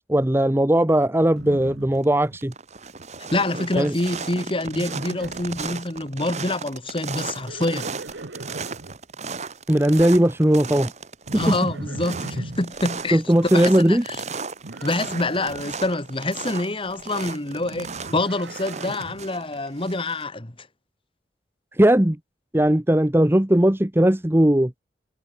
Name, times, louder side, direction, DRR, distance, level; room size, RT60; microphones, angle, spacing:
voice 1, 0.0-2.5 3.8-3.9 9.7-10.9 11.3-11.5 13.1-14.0 21.8-22.2 22.5-24.7, right 1 dB, 15° right, 0.9 m, -18 dB
Livestock farm animals working animals, 1.3-2.5 2.8-3.3 4.6-5.6 7.2-9.0 11.3-12.7 14.6-15.8 17.5-19.3, right 2 dB, 80° right, 1.3 m, -38 dB
sound 1, 1.7-2.0 2.4-20.2, right 4 dB, 40° right, 2.2 m, -35 dB
voice 2, 3.3-7.9 11.3-14.2 14.8-20.7, left 2 dB, 30° left, 2.0 m, -26 dB
head